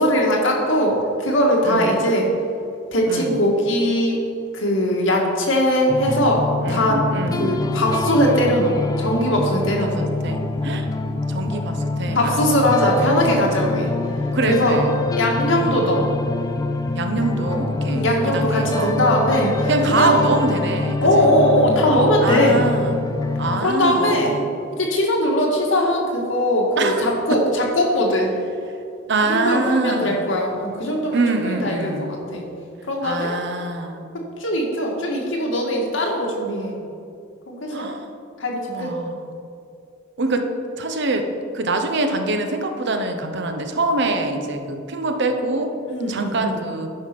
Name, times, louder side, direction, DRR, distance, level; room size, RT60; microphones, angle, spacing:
voice 1, 0.0-2.3 2.9-4.2 4.5-7.0 7.4-10.0 12.1-13.9 14.5-14.8 15.2-16.1 17.9-20.1 21.0-22.6 23.6-24.3 24.8-28.3 29.3-32.5 32.9-33.3 34.4-36.7 37.5-37.9 38.4-38.9 45.9-46.7, left 1 dB, 80° left, -1 dB, 1.9 m, -20 dB
voice 2, 1.6-2.1 3.0-3.4 6.6-7.6 9.8-12.6 12.9-13.8 14.3-15.0 15.5-15.9 16.9-18.1 18.3-19.0 19.7-21.3 22.2-23.0 23.4-24.5 26.8-27.2 29.1-30.3 31.1-32.2 33.0-34.1 37.7-38.1 38.7-39.2 40.2-40.5 40.8-41.3 41.5-45.7 46.1-46.9, right 2 dB, 65° right, 6 dB, 0.9 m, -24 dB
sound 1, 5.9-23.6, left 2 dB, 20° left, 0.5 m, -25 dB
9.7 x 5.6 x 5.9 m, 2.5 s
head